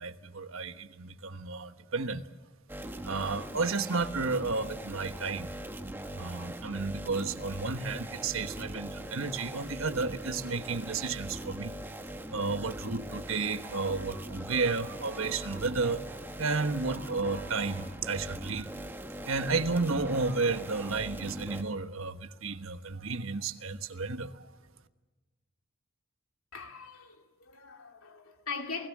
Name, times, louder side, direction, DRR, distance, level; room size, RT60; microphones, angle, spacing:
voice 1, 0.0-2.3 3.0-5.5 6.0-11.8 12.3-18.7 19.2-24.5, right 3 dB, 70° right, 1.3 m, -32 dB
sound 1, 2.7-21.6, right 1 dB, 10° right, 1.3 m, -41 dB
voice 2, 26.5-28.9, left 5 dB, 85° left, 2.5 m, -41 dB
28.5 x 18.0 x 7.4 m
head